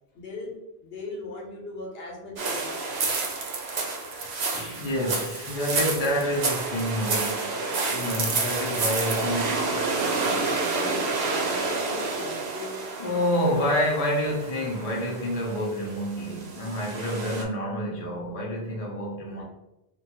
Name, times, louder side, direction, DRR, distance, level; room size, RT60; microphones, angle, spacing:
voice 1, 0.1-0.5 0.8-3.1 8.9-13.1 19.3-19.5, left 2 dB, 70° left, 1.0 m, -39 dB
sound 1, 2.4-17.4, right 3 dB, 80° right, 0.9 m, -29 dB
voice 2, 4.1-7.6 7.9-9.7 13.0-19.5, equal, 45° left, 0.6 m, -28 dB
2.8 x 2.3 x 2.8 m
omnidirectional pair, 1.1 m